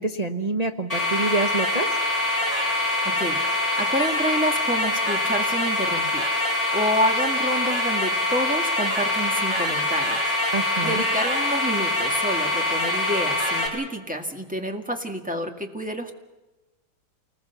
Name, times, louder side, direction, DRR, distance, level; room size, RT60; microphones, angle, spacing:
voice 1, 0.0-1.9 10.5-11.0, right 2 dB, 40° right, 4 dB, 0.5 m, -26 dB
sound 1, 0.9-13.7, left 1 dB, 15° left, 7.8 m, -24 dB
voice 2, 3.0-10.5 10.8-16.1, equal, 5° right, 3 dB, 1.8 m, -28 dB
28.5 x 20.5 x 7.0 m, 1.1 s
omnidirectional pair, 2.3 m